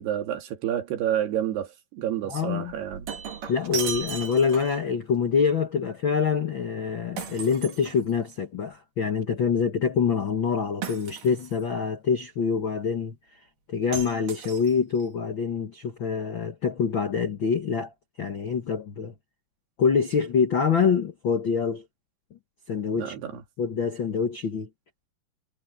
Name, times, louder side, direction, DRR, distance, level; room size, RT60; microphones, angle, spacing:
voice 1, 0.0-3.1 23.0-23.4, right 10 dB, 85° right, 4.3 m, -29 dB
voice 2, 2.3-2.7 3.5-13.1 13.7-17.9 18.2-19.1 19.8-21.8 22.7-23.2 23.6-24.7, left 6 dB, 80° left, 1.0 m, -25 dB
Shatter, 2.7-4.9 7.2-8.4 10.8-11.6 13.9-15.0, right 7 dB, 55° right, 4.3 m, -36 dB
omnidirectional pair, 4.5 m